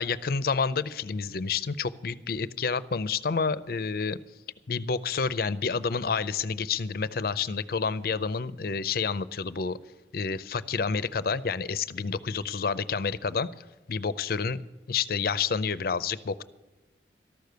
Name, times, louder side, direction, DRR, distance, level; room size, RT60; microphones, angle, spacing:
voice 1, 0.0-4.2 4.7-9.8 10.1-13.5 13.9-14.6 14.9-16.4, left 5 dB, 55° left, 16 dB, 0.5 m, -29 dB
13.5 x 6.7 x 9.2 m, 1.1 s
head